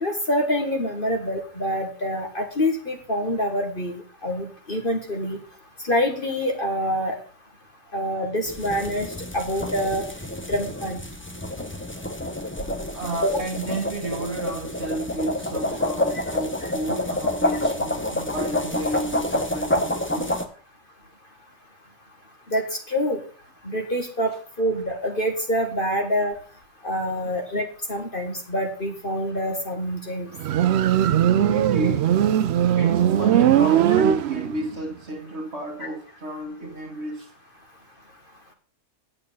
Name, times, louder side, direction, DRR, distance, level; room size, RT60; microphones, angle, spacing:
voice 1, 0.0-5.4 5.9-7.1 7.9-9.1 9.3-10.0 10.5-11.0 13.2-13.4 22.5-22.6 22.9-23.2 23.6-24.3 24.6-26.3 26.8-30.3, equal, 35° left, 1.6 m, -26 dB
sound 1, 8.5-20.4, left 1 dB, 10° left, 0.6 m, -28 dB
voice 2, 12.9-20.3 31.4-32.4 32.7-37.3, right 2 dB, 45° right, 1.9 m, -31 dB
Motorcycle, 30.4-34.7, right 10 dB, 70° right, 0.6 m, -19 dB
8.8 x 6.6 x 5.5 m
omnidirectional pair, 1.6 m